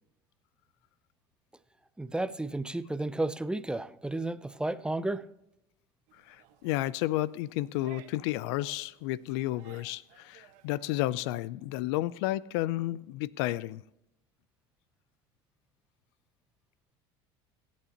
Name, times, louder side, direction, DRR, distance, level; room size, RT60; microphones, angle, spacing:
voice 1, 2.0-5.2, right 2 dB, 5° right, 0.5 m, -32 dB
voice 2, 6.1-13.8, left 16 dB, 75° left, 0.4 m, -32 dB
sound 1, 6.1-11.1, right 12 dB, 65° right, 1.5 m, -58 dB
22.5 x 8.5 x 2.9 m
supercardioid pair, 100°, 14 cm